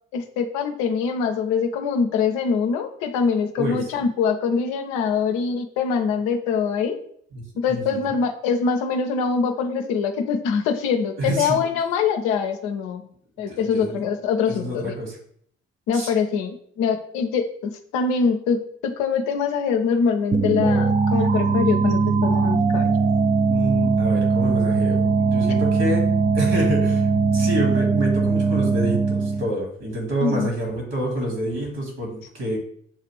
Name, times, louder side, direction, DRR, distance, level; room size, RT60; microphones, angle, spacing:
voice 1, 0.1-7.0 7.6-13.0 13.4-14.9 15.9-22.9 30.2-30.5, left 6 dB, 70° left, 7 dB, 0.6 m, -24 dB
voice 2, 7.7-8.1 11.2-11.6 13.5-14.0 14.5-15.2 15.9-16.1 23.5-26.0 26.3-32.6, equal, 60° right, 0 dB, 2.0 m, -28 dB
sound 1, 20.3-29.5, right 4 dB, 30° right, 0.4 m, -20 dB
6.7 x 2.4 x 3.3 m, 0.63 s
hypercardioid pair, 40°, 30 cm